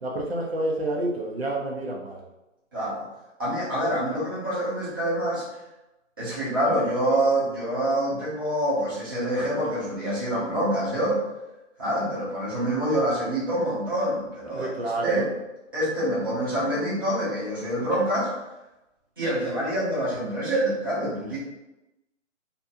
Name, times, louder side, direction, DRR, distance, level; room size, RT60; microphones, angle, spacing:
voice 1, 0.0-2.2 14.5-15.3, right 1 dB, 55° right, -1 dB, 0.5 m, -29 dB
voice 2, 2.7-3.0 3.4-5.4 6.2-11.2 11.8-14.7 15.0-15.3 15.7-18.4 19.2-21.4, right 1 dB, 20° right, -11 dB, 0.7 m, -26 dB
2.6 x 2.4 x 2.6 m, 0.98 s
hypercardioid pair, 175°, 37 cm